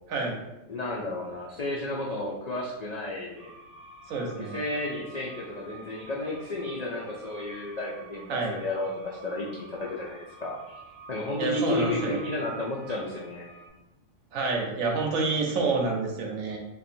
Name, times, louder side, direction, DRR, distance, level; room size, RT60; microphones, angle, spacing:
voice 1, 0.7-3.5 4.5-10.8 11.1-13.5, left 2 dB, 90° left, -4 dB, 0.3 m, -32 dB
sound 1, 3.4-13.7, right 2 dB, 55° right, 0.7 m, -49 dB
voice 2, 4.1-4.6 8.3-8.5 11.4-12.2 14.3-16.6, right 3 dB, 85° right, 0 dB, 1.0 m, -28 dB
2.6 x 2.5 x 4.1 m, 1.0 s
omnidirectional pair, 1.4 m